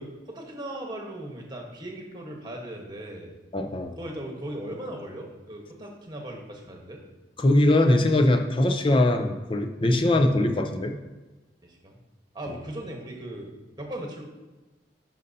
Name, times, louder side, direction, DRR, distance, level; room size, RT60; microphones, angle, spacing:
voice 1, 0.0-3.3 4.0-7.0 11.6-12.0 12.3-13.5 13.8-14.2, right 1 dB, 25° right, 0 dB, 1.2 m, -38 dB
voice 2, 3.5-4.0 7.4-11.0 12.5-12.6, left 1 dB, 30° left, 5 dB, 0.5 m, -22 dB
10.5 x 5.4 x 2.7 m, 1.2 s
head